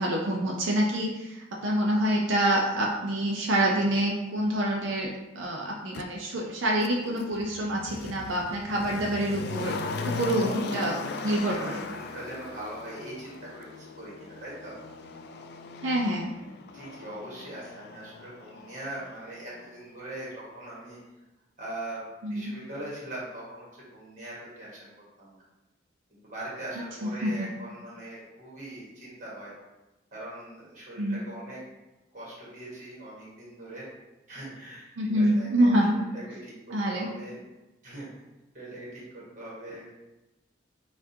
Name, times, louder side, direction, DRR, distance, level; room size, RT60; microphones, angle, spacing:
voice 1, 0.0-9.8 10.0-10.9 11.2-11.9 15.8-16.3 22.2-22.5 27.0-27.5 31.0-31.2 35.0-35.9 36.7-37.1, right 1 dB, 85° right, -2 dB, 0.5 m, -26 dB
Motor vehicle (road), 5.9-6.1 6.8-19.7 20.0-20.1, left 4 dB, 55° left, 0.3 m, -38 dB
voice 2, 9.9-11.0 11.5-14.8 16.7-21.0 21.6-25.4 26.1-29.5 30.1-31.6 32.1-33.9 34.3-37.4 37.8-38.1 38.5-39.9, right 1 dB, 40° right, -6 dB, 1.4 m, -41 dB
5.6 x 2.4 x 2.7 m, 1.0 s
head